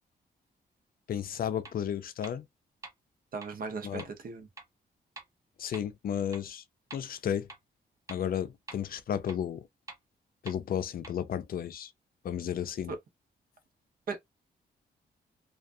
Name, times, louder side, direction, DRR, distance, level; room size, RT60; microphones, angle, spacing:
voice 1, 1.1-2.5 3.8-4.0 5.6-6.6 6.9-7.5 8.1-9.7 10.4-11.9 12.2-12.9, left 9 dB, 55° left, 0.4 m, -33 dB
sound 1, 1.7-1.8 2.2-2.3 2.8-2.9 3.4-3.5 4.0-4.1 4.6-4.7 5.2-5.3 5.7-5.8 6.3-6.4 6.9-7.0 7.5-7.6 8.1-8.2 8.7-8.8 9.3-9.4 9.9-10.0 10.5-10.6 11.0-11.1, right 3 dB, 20° right, 0.8 m, -44 dB
voice 2, 3.3-4.5 12.9-13.0 14.1-14.2, right 4 dB, 55° right, 0.8 m, -37 dB
2.4 x 2.3 x 2.5 m
cardioid pair, 110°, 18 cm